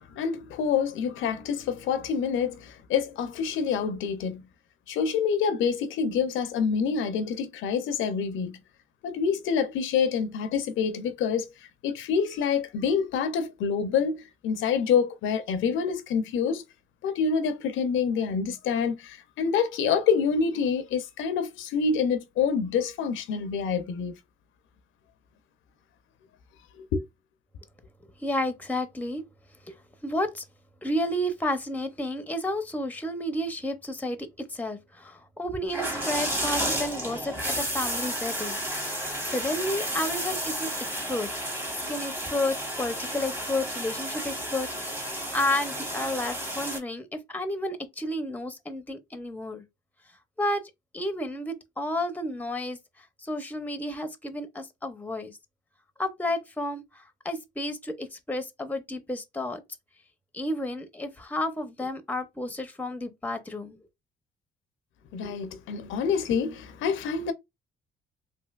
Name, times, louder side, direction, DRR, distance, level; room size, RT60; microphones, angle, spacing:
voice 1, 0.2-4.4 4.9-8.5 9.0-11.5 11.8-16.6 17.0-24.1 26.8-27.0 65.1-67.3, left 6 dB, 80° left, 0.5 m, -27 dB
voice 2, 28.2-29.2 29.7-29.8 30.0-30.4 30.8-38.6 39.3-40.7 41.1-41.3 41.9-44.7 45.0-49.6 50.4-50.6 50.9-55.4 56.0-59.6 60.3-63.8, left 1 dB, 10° left, 0.6 m, -31 dB
sound 1, 35.7-46.8, right 1 dB, 10° right, 1.0 m, -32 dB
3.2 x 2.6 x 2.3 m
cardioid pair, 90°, 20 cm